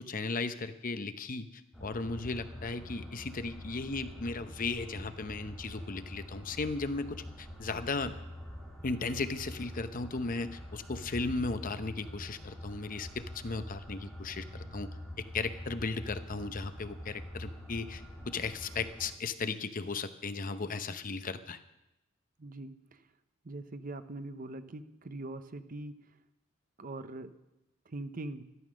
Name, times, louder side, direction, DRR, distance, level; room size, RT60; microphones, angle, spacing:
voice 1, 0.0-1.5 1.8-8.1 8.8-14.9 15.2-21.6, left 3 dB, 40° left, 11 dB, 0.8 m, -36 dB
sound 1, 1.7-19.1, left 1 dB, ahead, 2.8 m, -45 dB
voice 2, 22.4-23.1 23.4-26.0 26.8-27.3 27.9-28.5, right 2 dB, 45° right, 11 dB, 0.8 m, -42 dB
13.0 x 12.5 x 6.3 m, 0.94 s
head